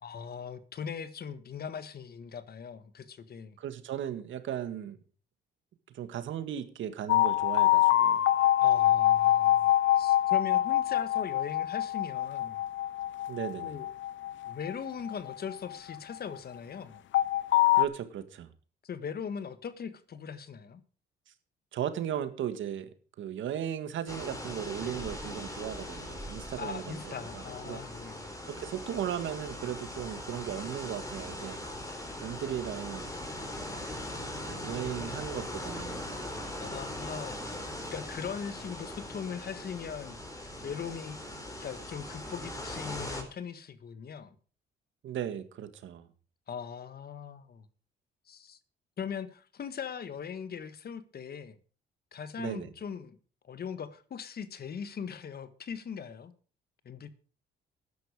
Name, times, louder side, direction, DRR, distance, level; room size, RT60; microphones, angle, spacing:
voice 1, 0.0-3.6 8.6-9.7 10.0-12.6 13.6-13.9 14.4-17.0 18.8-20.8 26.6-28.3 36.5-37.5 37.9-40.2 40.6-41.2 41.6-44.3 46.5-47.7 48.3-48.6 49.0-51.5 52.1-53.2 53.5-56.3 56.8-57.1, left 7 dB, 50° left, 1.5 m, -40 dB
voice 2, 3.6-5.0 5.9-8.2 13.3-13.7 17.7-18.5 21.7-22.9 23.2-27.8 28.5-31.6 32.2-33.1 34.4-36.0 45.0-46.0 52.4-52.7, right 10 dB, 75° right, 1.9 m, -36 dB
sound 1, 7.1-16.2 17.1-17.9, left 13 dB, 70° left, 0.8 m, -25 dB
sound 2, 24.1-43.2, left 1 dB, 15° left, 4.3 m, -40 dB
13.5 x 10.5 x 4.9 m
cardioid pair, 90°, 20 cm